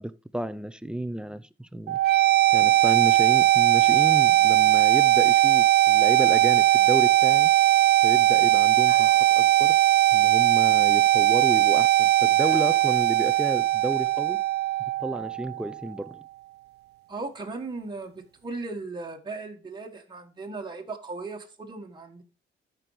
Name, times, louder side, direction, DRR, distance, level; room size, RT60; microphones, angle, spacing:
voice 1, 0.0-2.0 2.5-7.5 8.0-9.8 10.1-14.4 15.0-16.2, right 1 dB, 5° right, 0.5 m, -32 dB
sound 1, 1.9-15.8, right 15 dB, 55° right, 0.4 m, -20 dB
sound 2, 6.6-7.8 8.9-11.3 12.4-14.3, equal, 55° left, 3.4 m, -50 dB
voice 2, 17.1-22.2, right 3 dB, 20° right, 1.7 m, -37 dB
13.5 x 5.3 x 3.2 m
cardioid pair, 90°, 20 cm